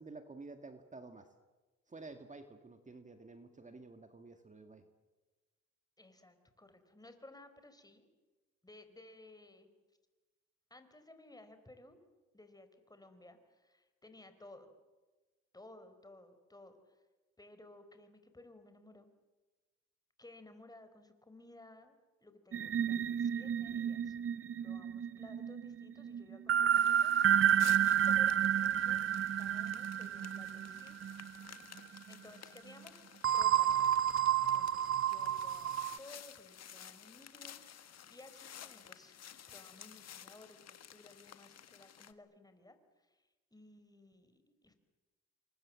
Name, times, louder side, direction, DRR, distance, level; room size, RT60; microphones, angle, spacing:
voice 1, 0.0-1.3 1.9-4.8, right 3 dB, 25° right, 7 dB, 2.0 m, -51 dB
voice 2, 6.0-8.1 8.6-9.7 10.7-12.0 12.3-14.7 15.5-17.0 17.4-19.1 20.2-24.2 24.6-29.1 29.4-31.1 32.1-33.9 34.5-39.2 39.5-44.7, left 2 dB, 10° left, 9 dB, 4.3 m, -57 dB
sound 1, 22.5-31.4 31.8-32.0 33.2-36.0, right 10 dB, 45° right, 0.9 m, -31 dB
sound 2, 26.7-42.1, left 9 dB, 55° left, 1.7 m, -54 dB
29.0 x 24.5 x 7.6 m, 1.2 s
cardioid pair, 90°, 30 cm